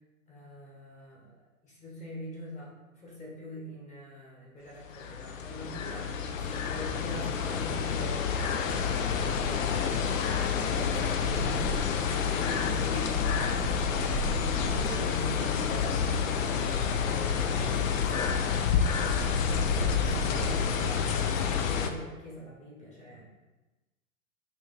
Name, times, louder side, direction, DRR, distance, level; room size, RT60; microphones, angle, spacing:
voice 1, 0.3-14.2 14.6-23.2, equal, 15° left, -5 dB, 1.2 m, -43 dB
sound 1, 4.8-21.9, left 7 dB, 65° left, 0.5 m, -29 dB
Purr, 8.7-15.2 15.8-21.1, right 5 dB, 55° right, 0.4 m, -40 dB
4.9 x 2.7 x 2.5 m, 1.1 s
hypercardioid pair, 105°, 43 cm